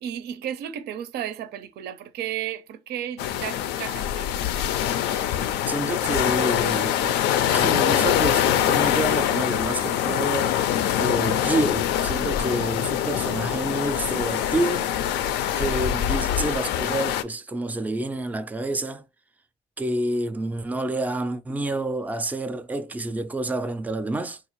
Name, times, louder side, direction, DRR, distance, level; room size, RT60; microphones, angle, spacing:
voice 1, 0.0-4.3, right 10 dB, 75° right, 0.5 m, -33 dB
sound 1, 3.2-17.2, left 10 dB, 85° left, 0.4 m, -24 dB
voice 2, 5.7-7.2 7.5-10.6 11.0-14.9 15.6-19.0 19.8-24.4, right 2 dB, 10° right, 0.3 m, -28 dB
3.7 x 2.4 x 3.0 m
cardioid pair, 110°, 17 cm